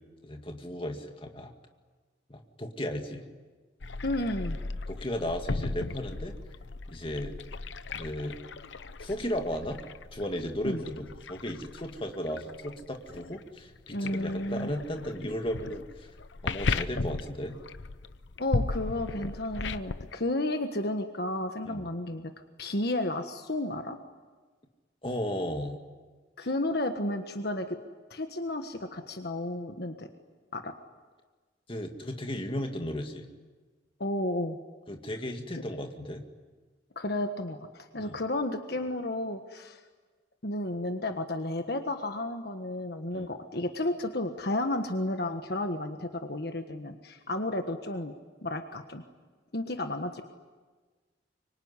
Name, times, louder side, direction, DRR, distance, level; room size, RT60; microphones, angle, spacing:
voice 1, 0.2-1.5 2.3-3.2 4.9-6.4 6.9-7.3 8.0-8.4 9.0-9.8 10.1-16.1 16.4-17.6 21.7-21.8 25.0-25.8 31.7-33.3 34.9-36.3 38.0-38.2 43.1-43.2, left 1 dB, 30° left, 4 dB, 2.2 m, -35 dB
sound 1, 3.8-20.1, left 3 dB, 80° left, 0.8 m, -36 dB
voice 2, 4.0-4.6 10.6-10.8 13.9-14.7 18.4-22.3 22.6-24.0 26.4-27.8 28.1-30.1 30.5-30.7 34.0-34.6 36.9-39.8 40.4-48.1 48.4-49.0 49.5-50.2, left 1 dB, 60° left, 6 dB, 1.5 m, -32 dB
25.0 x 24.0 x 9.8 m, 1.4 s
head